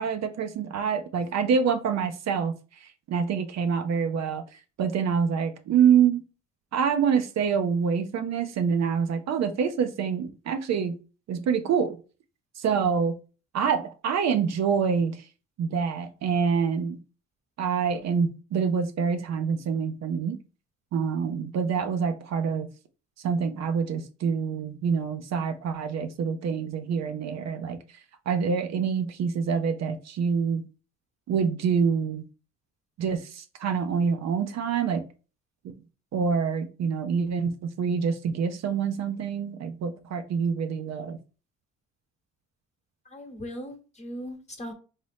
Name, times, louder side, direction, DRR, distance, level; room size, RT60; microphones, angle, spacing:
voice 1, 0.0-2.6 2.8-4.4 4.8-6.2 6.7-11.0 11.3-12.0 12.6-13.2 13.5-15.2 15.6-17.0 17.6-20.4 20.9-22.7 23.2-27.8 28.3-30.7 31.3-32.2 33.0-35.1 36.1-41.2, right 6 dB, 60° right, 0.6 m, -26 dB
voice 2, 43.0-44.7, equal, 20° left, 1.1 m, -39 dB
3.6 x 2.8 x 3.3 m
cardioid pair, 90°, 30 cm